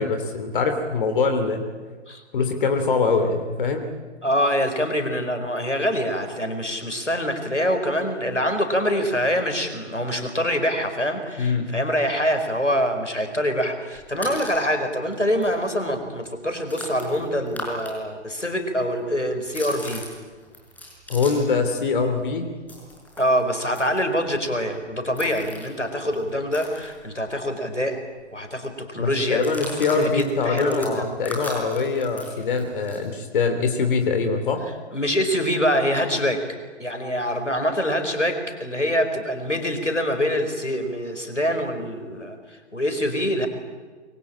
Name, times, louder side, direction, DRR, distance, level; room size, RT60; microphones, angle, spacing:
voice 1, 0.0-1.6 2.3-3.9 11.4-11.7 21.1-22.5 29.0-34.6, left 4 dB, 45° left, 7 dB, 3.0 m, -23 dB
voice 2, 4.2-20.0 23.2-28.0 28.3-29.4 29.9-31.1 34.9-36.4 36.8-42.4 42.7-43.5, equal, 90° left, 7 dB, 4.7 m, -25 dB
sound 1, 13.9-14.7 15.1-15.2 15.4-17.9 18.2-21.6 21.9-27.5 27.8-27.9 28.2-28.5 29.3-33.1, left 1 dB, 5° left, 5.6 m, -39 dB
26.5 x 23.5 x 8.7 m, 1.4 s
figure-of-eight pair, 125°, 35 cm